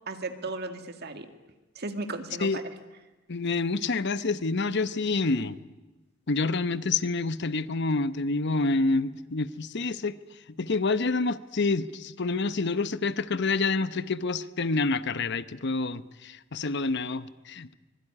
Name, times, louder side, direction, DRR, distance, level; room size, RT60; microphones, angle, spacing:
voice 1, 0.1-1.3 1.8-2.6, right 3 dB, 55° right, 7 dB, 2.1 m, -35 dB
voice 2, 3.3-5.6 6.3-10.2 10.6-17.7, left 3 dB, 60° left, 14 dB, 0.9 m, -28 dB
24.5 x 21.5 x 9.8 m, 1.1 s
head